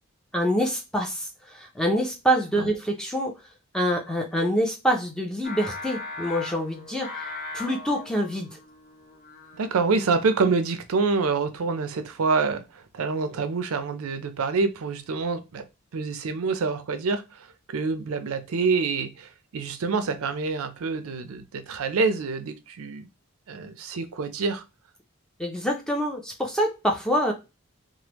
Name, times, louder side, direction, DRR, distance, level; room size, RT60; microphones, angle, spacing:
voice 1, 0.3-3.3 3.7-7.3 7.5-8.6 25.4-27.3, equal, 5° left, 0.5 m, -26 dB
Singing, 5.4-10.7, left 3 dB, 40° left, 1.0 m, -39 dB
voice 2, 9.5-15.7 15.9-23.1 23.5-24.6, right 4 dB, 75° right, 0.4 m, -27 dB
3.3 x 2.0 x 2.9 m
head